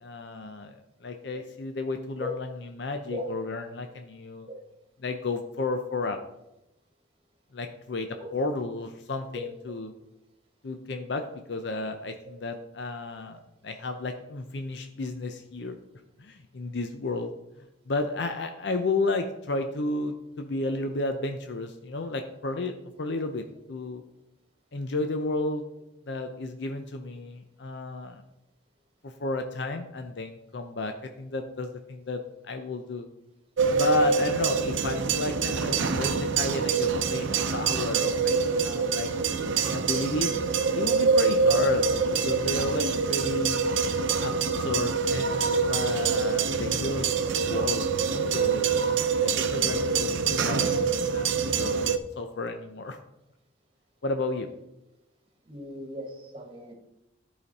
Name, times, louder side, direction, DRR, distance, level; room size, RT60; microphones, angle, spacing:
voice 1, 0.0-4.5 5.0-6.2 7.5-9.9 10.6-15.8 16.2-17.3 17.9-24.0 24.7-25.6 26.1-28.2 29.0-33.1 33.7-39.1 39.5-40.3 40.7-41.8 42.2-43.6 44.2-47.1 47.4-48.7 49.2-53.0 54.0-54.5, left 2 dB, 70° left, 6 dB, 0.6 m, -32 dB
voice 2, 3.1-3.4 4.5-4.7 8.2-8.4 9.3-9.5 55.5-56.7, left 2 dB, 30° right, 1 dB, 1.5 m, -37 dB
sound 1, 33.6-52.0, right 5 dB, 90° right, 0.6 m, -25 dB
11.5 x 5.1 x 4.1 m, 0.90 s
head